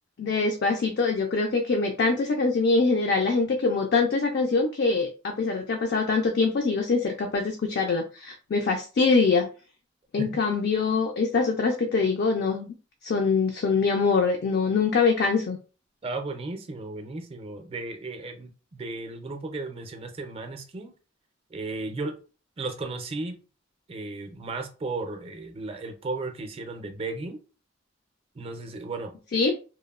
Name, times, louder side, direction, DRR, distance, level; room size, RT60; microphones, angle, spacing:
voice 1, 0.2-9.5 10.1-12.7 13.0-15.6 29.3-29.5, left 4 dB, 55° left, 0.4 m, -24 dB
voice 2, 16.0-20.9 21.5-22.2 22.6-23.4 23.9-27.4 28.4-29.1, right 3 dB, 30° right, 0.4 m, -35 dB
2.9 x 2.0 x 2.3 m
head